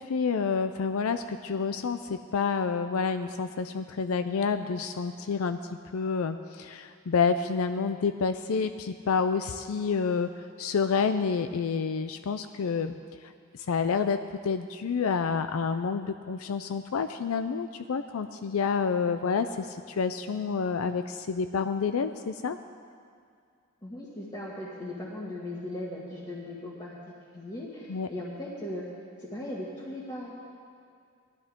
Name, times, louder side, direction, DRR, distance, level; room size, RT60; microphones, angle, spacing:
voice 1, 0.0-5.6 5.9-12.9 13.2-14.2 14.4-22.6 27.9-28.1, left 5 dB, 85° left, 9 dB, 0.5 m, -29 dB
voice 2, 23.8-26.9 27.3-28.8 29.2-30.3, left 1 dB, 20° left, -9 dB, 1.7 m, -38 dB
19.5 x 13.0 x 3.7 m, 2.2 s
head